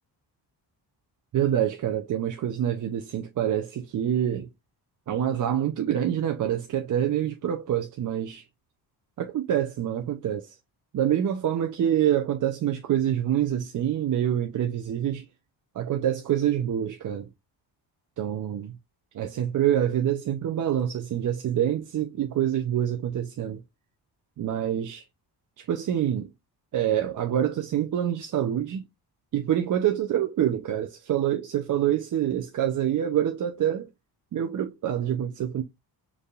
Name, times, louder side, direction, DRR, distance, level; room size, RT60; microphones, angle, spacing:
voice 1, 1.3-4.5 5.1-8.4 9.2-10.5 10.9-15.2 15.8-17.3 18.2-18.8 19.1-23.6 24.4-25.0 25.6-26.3 26.7-28.8 29.3-33.9 34.3-35.6, right 10 dB, 50° right, 0.6 m, -26 dB
4.4 x 3.5 x 2.3 m
cardioid pair, 130°, 40 cm